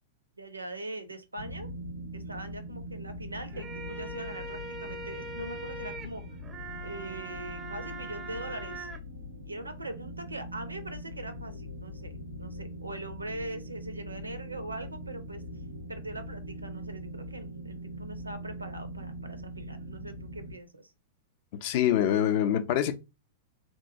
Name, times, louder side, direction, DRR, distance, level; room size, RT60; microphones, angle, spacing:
voice 1, 0.4-1.7 2.1-6.2 6.8-8.9 9.4-15.4 15.9-20.9, right 1 dB, 85° right, 0.5 m, -41 dB
sound 1, 1.4-20.6, equal, 90° left, 0.7 m, -42 dB
sound 2, 3.4-9.0, right 2 dB, 20° right, 0.4 m, -42 dB
voice 2, 21.5-22.9, left 10 dB, 45° left, 0.4 m, -25 dB
3.0 x 2.2 x 2.5 m
figure-of-eight pair, 100°, 0 cm